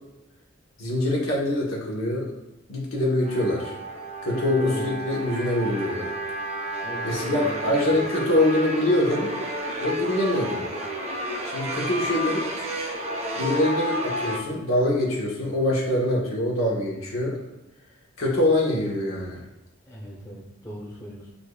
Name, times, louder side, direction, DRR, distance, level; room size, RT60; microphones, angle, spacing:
voice 1, 0.8-2.3 2.7-3.8 4.2-6.1 7.0-9.3 9.8-10.6 11.4-12.7 13.4-17.4 18.2-19.4, left 1 dB, 80° left, -4 dB, 1.1 m, -24 dB
sound 1, 3.2-14.4, equal, 30° right, 0.5 m, -31 dB
voice 2, 4.2-4.9 6.8-8.0 19.9-21.3, equal, 15° left, -6 dB, 1.2 m, -38 dB
6.7 x 2.6 x 2.3 m, 1.0 s
head